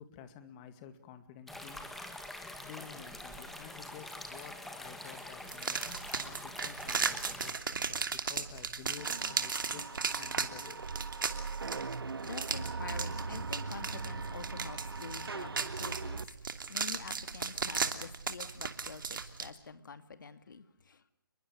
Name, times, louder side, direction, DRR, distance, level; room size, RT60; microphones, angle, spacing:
voice 1, 0.0-1.9 2.6-10.8, left 9 dB, 20° left, 10 dB, 2.1 m, -51 dB
sound 1, 1.5-7.5, left 1 dB, ahead, 1.7 m, -45 dB
sound 2, 5.5-19.5, right 5 dB, 60° right, 2.8 m, -36 dB
sound 3, 9.0-16.2, right 4 dB, 80° right, 1.5 m, -40 dB
voice 2, 12.2-21.1, left 5 dB, 55° left, 10 dB, 2.6 m, -47 dB
30.0 x 22.0 x 6.5 m, 0.63 s
hypercardioid pair, 165°, 12 cm